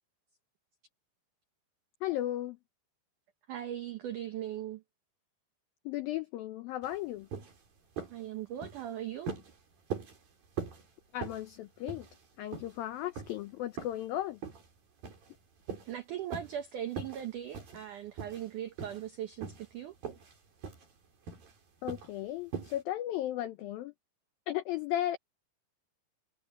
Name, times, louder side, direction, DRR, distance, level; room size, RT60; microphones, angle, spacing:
voice 1, 2.0-2.6 5.9-7.3 11.1-12.1 12.4-14.4 21.8-23.9 24.5-25.2, left 13 dB, 85° left, 2.0 m, -35 dB
voice 2, 3.5-4.8 8.1-9.4 15.9-20.0, right 11 dB, 85° right, 1.8 m, -39 dB
sound 1, 6.8-7.0 7.3-7.6 8.0-8.2 8.6-8.9 9.3-9.5 9.9-10.2 10.6-10.8 11.2-11.5 11.9-12.2 12.5-12.8 13.2-13.3 13.8-14.0 14.4-14.7 15.0-15.3 15.7-15.9 16.3-16.6 16.9-17.3 17.5-17.9 18.2-18.5 18.8-19.1 19.4-19.7 20.0-20.4 20.6-20.9 21.3-21.5 21.9-22.1 22.5-22.8, right 6 dB, 55° right, 6.5 m, -41 dB
omnidirectional pair, 5.2 m